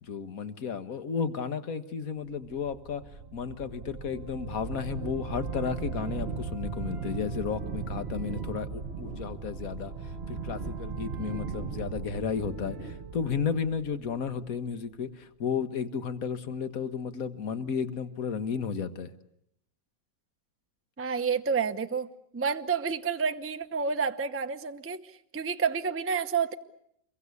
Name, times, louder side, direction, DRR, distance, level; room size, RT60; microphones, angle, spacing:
voice 1, 0.0-3.0 3.3-19.1, left 6 dB, 50° left, 11 dB, 1.7 m, -33 dB
sound 1, 2.4-14.5, right 5 dB, 40° right, 1.4 m, -37 dB
voice 2, 21.0-22.1 22.3-26.5, right 6 dB, 10° right, 8 dB, 0.6 m, -29 dB
28.0 x 23.0 x 8.3 m, 0.75 s
omnidirectional pair, 1.9 m